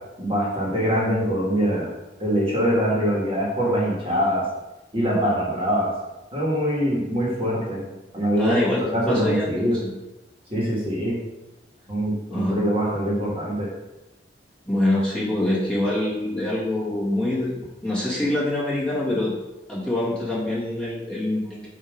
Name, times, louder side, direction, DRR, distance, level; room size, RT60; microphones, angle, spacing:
voice 1, 0.2-1.9 2.2-4.4 4.9-5.9 6.3-7.8 8.1-8.6 8.9-9.8 10.5-11.2 11.9-13.7, equal, 30° right, -5 dB, 1.5 m, -23 dB
voice 2, 8.4-9.9 12.3-12.6 14.7-19.3 19.7-21.7, left 1 dB, 5° left, -8 dB, 1.7 m, -25 dB
7.6 x 2.9 x 5.0 m, 1.0 s
head